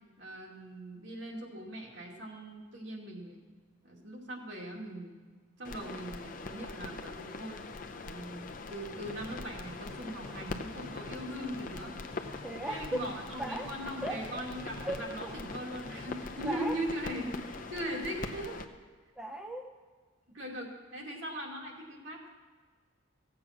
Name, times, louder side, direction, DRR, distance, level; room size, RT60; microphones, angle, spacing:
voice 1, 0.2-3.4 3.8-5.1 5.6-7.6 8.0-12.0 12.7-18.6 20.3-22.3, right 1 dB, 60° right, -2 dB, 2.6 m, -40 dB
sound 1, 5.6-18.6, left 3 dB, 40° left, 0.7 m, -42 dB
sound 2, 9.0-16.5, left 1 dB, 30° right, 1.7 m, -50 dB
voice 2, 12.4-13.0 13.4-13.7 14.0-14.4 14.8-15.3 16.4-16.8 19.2-19.7, right 1 dB, 5° right, 2 dB, 0.6 m, -37 dB
17.0 x 7.8 x 6.0 m, 1.5 s
head